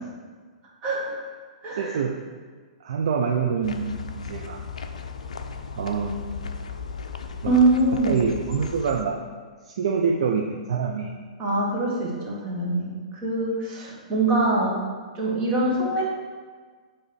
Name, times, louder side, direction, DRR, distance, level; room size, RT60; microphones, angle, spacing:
voice 1, 0.8-1.2 1.6-2.0 7.4-8.1 11.4-12.9 13.2-14.8 15.1-16.0, right 2 dB, 30° right, -3 dB, 1.4 m, -23 dB
voice 2, 1.7-2.1 2.8-4.0 4.3-4.6 5.8-6.2 7.4-7.6 8.1-9.2 9.6-11.2, right 6 dB, 55° right, 1 dB, 0.4 m, -25 dB
sound 1, 3.6-9.0, left 5 dB, 65° left, 0.4 m, -36 dB
7.2 x 3.0 x 4.6 m, 1.5 s
figure-of-eight pair, 110°, 4 cm